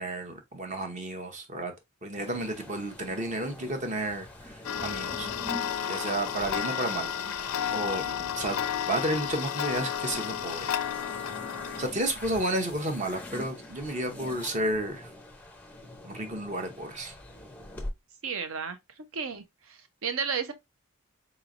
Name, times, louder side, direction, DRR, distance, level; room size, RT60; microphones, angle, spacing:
voice 1, 0.0-1.7 2.0-5.3 5.8-10.7 11.8-15.1 16.0-17.1, right 1 dB, 30° right, 0.8 m, -32 dB
sound 1, 2.2-17.9, left 1 dB, 5° left, 0.5 m, -44 dB
Tick-tock, 4.6-11.9, left 9 dB, 70° left, 0.4 m, -32 dB
voice 2, 18.2-18.8 19.1-20.5, right 6 dB, 65° right, 0.6 m, -33 dB
3.9 x 3.1 x 2.5 m
head